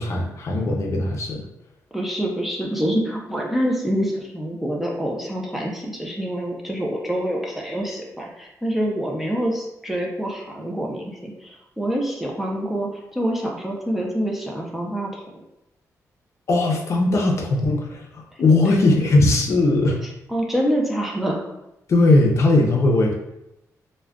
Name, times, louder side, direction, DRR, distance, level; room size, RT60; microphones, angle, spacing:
voice 1, 0.0-1.4 16.5-20.0 21.9-23.1, left 2 dB, 50° left, 0 dB, 0.5 m, -19 dB
voice 2, 1.9-15.4 18.3-18.7 20.0-21.4, equal, 5° right, -2 dB, 0.4 m, -26 dB
2.3 x 2.2 x 3.4 m, 0.87 s
cardioid pair, 120°, 6 cm